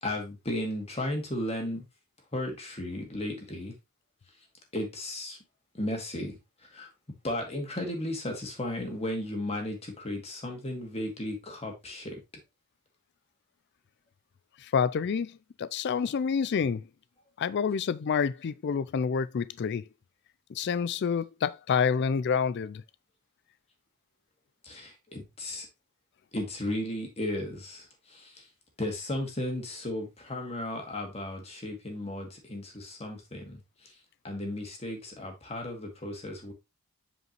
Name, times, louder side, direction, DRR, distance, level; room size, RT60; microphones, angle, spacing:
voice 1, 0.0-1.8 2.3-3.7 4.7-5.4 5.7-6.9 7.2-12.2 24.6-25.7 26.3-28.5 28.8-33.9 34.2-36.5, left 1 dB, 30° left, 2.0 m, -35 dB
voice 2, 14.6-15.3 15.6-16.8 17.4-19.8 20.5-22.8, left 6 dB, 50° left, 0.4 m, -28 dB
7.9 x 5.1 x 3.0 m
head